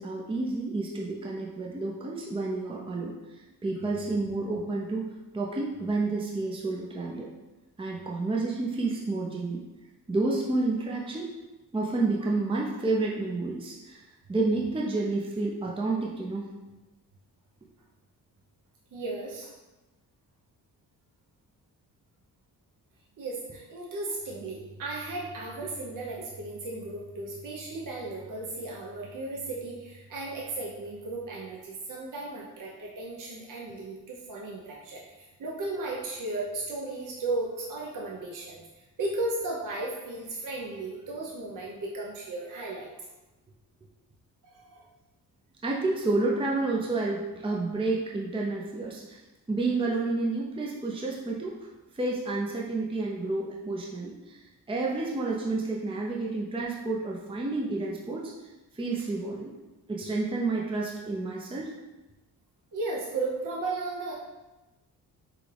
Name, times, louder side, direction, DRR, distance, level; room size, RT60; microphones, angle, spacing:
voice 1, 0.0-5.1 5.3-7.3 7.8-9.6 10.1-11.3 11.7-14.0 14.3-16.5 45.6-49.2 49.5-51.7 51.9-54.4 54.7-58.3 58.7-59.5 59.9-61.7, right 3 dB, 15° right, -3 dB, 0.6 m, -30 dB
voice 2, 18.9-19.5 23.2-38.6 39.0-42.9 44.4-44.9 62.7-64.1, right 2 dB, 50° right, -3 dB, 1.0 m, -35 dB
6.1 x 2.3 x 3.4 m, 1.1 s
cardioid pair, 75°, 39 cm